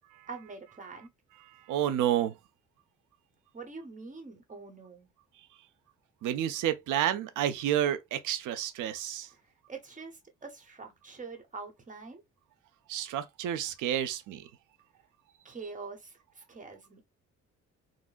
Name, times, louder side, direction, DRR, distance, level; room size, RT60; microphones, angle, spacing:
voice 1, 0.3-1.1 3.5-5.1 9.3-9.4 9.7-12.2 15.4-17.0, right 4 dB, 25° right, 1.0 m, -44 dB
voice 2, 1.7-2.3 6.2-9.3 12.9-14.4, right 11 dB, 85° right, 0.5 m, -30 dB
3.7 x 2.0 x 2.4 m
cardioid pair, 90°, 30 cm